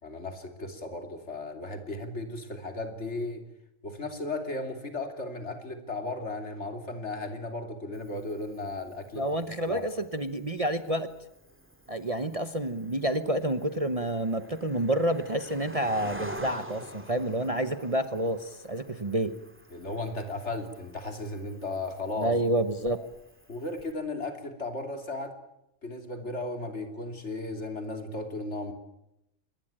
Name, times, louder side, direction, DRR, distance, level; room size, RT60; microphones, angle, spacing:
voice 1, 0.0-3.4 3.8-9.2 9.7-9.9 19.7-22.3 23.5-25.3 25.8-28.7, left 2 dB, 55° left, 6 dB, 3.3 m, -35 dB
Cricket, 7.9-23.9, equal, 10° right, 2.6 m, -47 dB
voice 2, 9.1-11.1 11.9-19.3 22.2-23.1, right 1 dB, 30° right, 9 dB, 1.0 m, -29 dB
25.5 x 21.0 x 8.9 m, 0.86 s
omnidirectional pair, 1.4 m